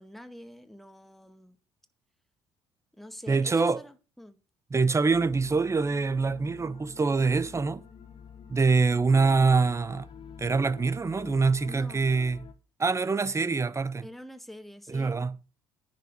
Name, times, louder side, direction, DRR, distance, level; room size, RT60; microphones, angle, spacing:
voice 1, 0.0-1.6 2.9-4.4 11.6-12.0 14.0-15.2, equal, ahead, 1.8 m, -46 dB
voice 2, 3.3-3.8 4.7-7.8 8.5-10.1 10.4-12.4 12.8-14.1 14.9-15.3, right 4 dB, 25° right, 0.9 m, -25 dB
sound 1, 5.1-12.5, left 7 dB, 45° left, 1.9 m, -48 dB
10.0 x 5.8 x 8.0 m
hypercardioid pair, 55°, 13 cm